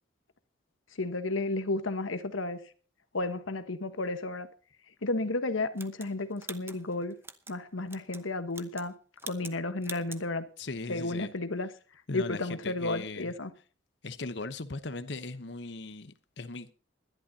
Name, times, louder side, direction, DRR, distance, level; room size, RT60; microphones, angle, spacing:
voice 1, 1.0-2.6 3.1-4.5 5.0-7.2 7.5-8.9 9.2-10.5 10.9-11.7 12.1-13.5, left 2 dB, 90° left, 1.3 m, -32 dB
sound 1, 5.8-7.6 7.9-8.2 8.5-8.9 9.2-9.6 9.8-10.2, right 4 dB, 10° right, 0.8 m, -44 dB
voice 2, 10.6-11.3 12.1-13.3 14.0-16.7, left 3 dB, 60° left, 0.9 m, -38 dB
21.0 x 11.5 x 2.8 m
head